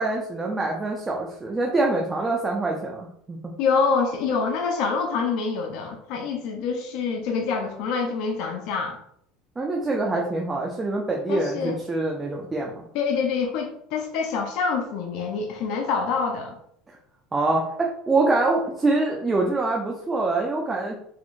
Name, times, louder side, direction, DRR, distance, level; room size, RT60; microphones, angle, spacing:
voice 1, 0.0-3.5 9.6-12.8 16.9-17.0 17.3-20.9, right 2 dB, 20° right, -1 dB, 0.6 m, -25 dB
voice 2, 3.6-9.0 11.3-11.8 12.9-16.6, left 5 dB, 65° left, 2 dB, 0.6 m, -26 dB
4.2 x 2.8 x 2.5 m, 0.67 s
supercardioid pair, 110°, 0 cm